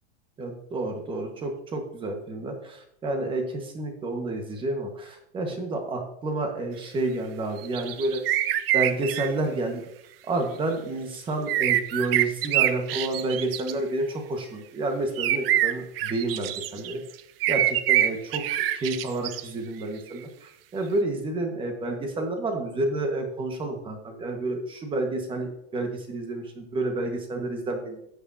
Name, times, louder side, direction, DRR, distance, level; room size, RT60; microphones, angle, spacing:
voice 1, 0.4-8.2 8.7-9.8 10.2-17.0 17.5-28.0, right 2 dB, 15° right, 4 dB, 1.5 m, -30 dB
sound 1, 7.6-9.3 11.5-13.7 15.2-16.9 17.4-19.4, right 12 dB, 60° right, 0.7 m, -25 dB
13.0 x 9.0 x 2.8 m, 0.76 s
supercardioid pair, 150°, 33 cm